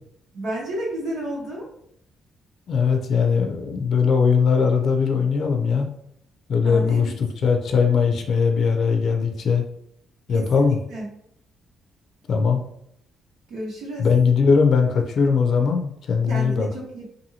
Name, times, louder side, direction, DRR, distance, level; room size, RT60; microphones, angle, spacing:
voice 1, 0.3-1.6 6.6-7.1 10.3-11.1 13.5-14.1 16.3-17.1, right 1 dB, 85° right, -5 dB, 1.3 m, -31 dB
voice 2, 2.7-5.9 6.5-9.6 10.3-10.8 12.3-12.6 14.0-16.7, left 5 dB, 60° left, 4 dB, 0.4 m, -20 dB
2.7 x 2.6 x 2.8 m, 0.71 s
cardioid pair, 90°, 0 cm